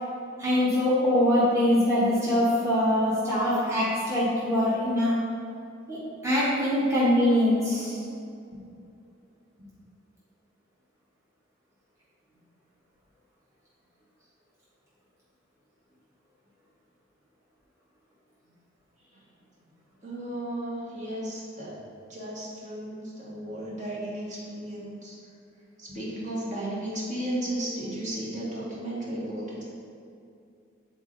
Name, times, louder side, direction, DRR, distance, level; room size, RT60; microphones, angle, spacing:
voice 1, 0.4-5.1 5.9-6.0 6.2-8.0, left 1 dB, 15° right, -10 dB, 1.3 m, -23 dB
voice 2, 20.0-21.8 22.1-25.2 25.8-29.6, right 1 dB, 40° right, -6 dB, 1.7 m, -34 dB
8.3 x 4.2 x 3.9 m, 2.5 s
head